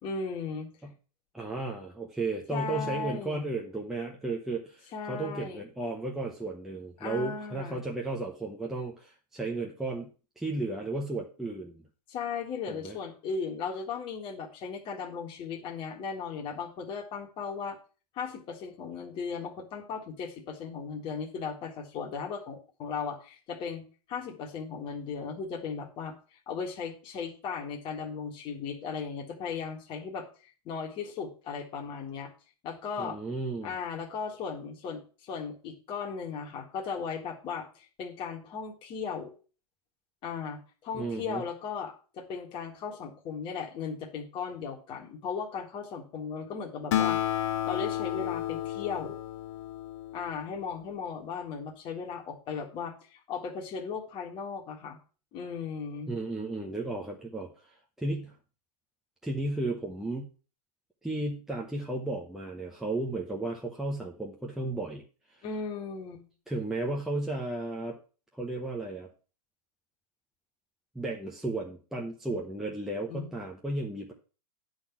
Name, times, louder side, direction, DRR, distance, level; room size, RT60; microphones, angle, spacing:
voice 1, 0.0-0.7 2.5-3.5 4.9-5.6 7.0-7.8 12.1-17.8 18.1-23.8 24.1-26.1 26.5-30.3 30.7-32.3 32.6-33.2 33.6-39.3 40.2-47.2 47.7-49.2 50.1-55.0 55.3-56.1 65.4-66.2 73.1-73.3, left 5 dB, 25° left, 1 dB, 1.8 m, -37 dB
voice 2, 1.3-10.1 10.4-11.9 12.7-13.0 33.0-33.7 40.9-41.4 56.1-58.4 59.2-60.3 61.0-65.0 65.3-65.4 66.5-68.0 68.3-69.1 70.9-74.1, right 2 dB, ahead, -1 dB, 0.8 m, -34 dB
Acoustic guitar, 46.9-50.6, left 12 dB, 45° left, 1.0 m, -31 dB
9.8 x 4.0 x 7.2 m, 0.36 s
hypercardioid pair, 155°, 20 cm